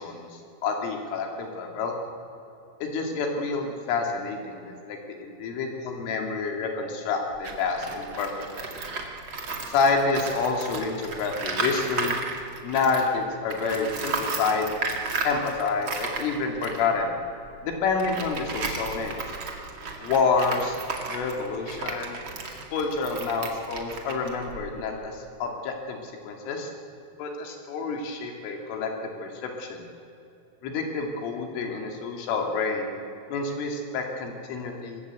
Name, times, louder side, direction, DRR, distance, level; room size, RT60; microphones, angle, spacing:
voice 1, 0.0-2.0 2.8-8.7 9.7-12.2 12.6-14.7 15.3-17.1 17.6-19.2 20.0-20.8 21.1-22.2 22.7-26.7 27.2-29.9 30.6-32.9 33.3-35.0, left 4 dB, 90° left, 2 dB, 5.1 m, -28 dB
Tools, 7.3-13.2 13.5-24.9, right 4 dB, 40° right, 1.9 m, -34 dB
25.5 x 20.0 x 8.3 m, 2.9 s
omnidirectional pair, 5.5 m